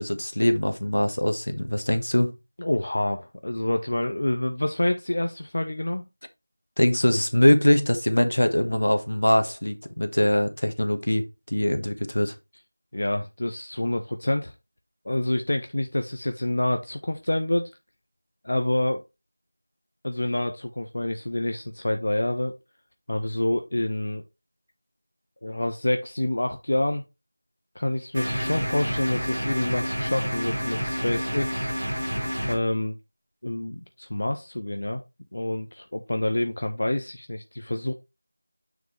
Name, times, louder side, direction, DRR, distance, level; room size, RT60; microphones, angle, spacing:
voice 1, 0.0-2.3 6.8-12.3, left 1 dB, 70° left, 1.4 m, -22 dB
voice 2, 2.6-6.0 12.9-14.5 15.0-17.7 18.4-19.0 20.0-22.6 23.1-24.2 25.4-27.0 27.7-31.7 32.5-33.0 33.4-35.0 35.3-37.9, left 1 dB, 35° left, 0.6 m, -27 dB
sound 1, 28.1-32.5, equal, 10° right, 2.9 m, -29 dB
7.0 x 6.1 x 3.2 m
figure-of-eight pair, 180°, 0 cm